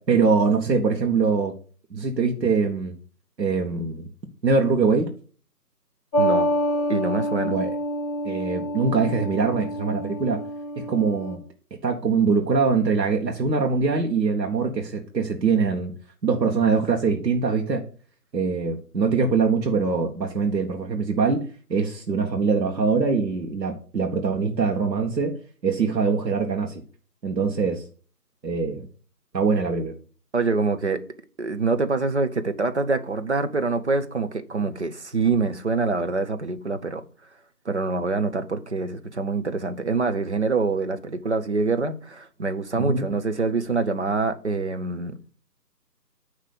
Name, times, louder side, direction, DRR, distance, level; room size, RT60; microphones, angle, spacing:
voice 1, 0.1-1.5 1.9-3.0 3.4-4.1 4.4-5.1 7.4-7.7 8.2-10.4 10.7-11.4 11.8-15.9 16.2-17.8 18.3-21.4 21.7-26.8 27.2-27.9 28.4-28.9 29.3-29.9 42.7-43.1, right 5 dB, 80° right, 1.5 m, -23 dB
sound 1, 6.1-11.3, equal, 10° left, 1.3 m, -27 dB
voice 2, 6.2-6.5 6.9-7.5 30.3-31.0 31.4-37.0 37.7-45.2, right 3 dB, 45° right, 0.8 m, -25 dB
9.6 x 3.2 x 6.8 m
figure-of-eight pair, 165°, 50 cm